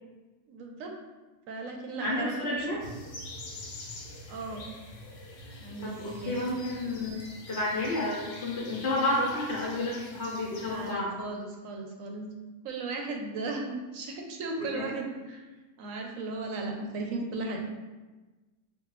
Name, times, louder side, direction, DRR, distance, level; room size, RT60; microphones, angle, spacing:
voice 1, 0.5-0.9 1.5-2.5 4.3-4.6 5.6-6.4 10.6-12.3 12.6-15.4 15.8-17.6, right 3 dB, 75° right, 2 dB, 1.0 m, -36 dB
voice 2, 2.0-2.8 5.8-7.2 7.5-11.1 14.6-14.9, left 2 dB, 55° left, -3 dB, 1.0 m, -31 dB
sound 1, 2.8-10.9, left 2 dB, 85° left, 1.2 m, -45 dB
5.2 x 2.3 x 3.0 m, 1.2 s
omnidirectional pair, 1.5 m